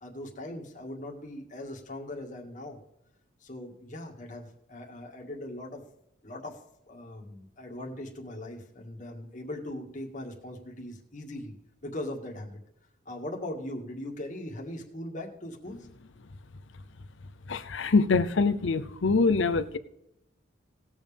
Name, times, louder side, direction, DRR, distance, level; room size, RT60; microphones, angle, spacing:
voice 1, 0.0-2.8 3.4-5.8 6.2-11.5 11.8-12.6 13.1-15.9, left 1 dB, 40° left, 2.0 m, -40 dB
voice 2, 17.5-19.8, left 4 dB, 80° left, 0.7 m, -24 dB
19.0 x 7.2 x 3.5 m
head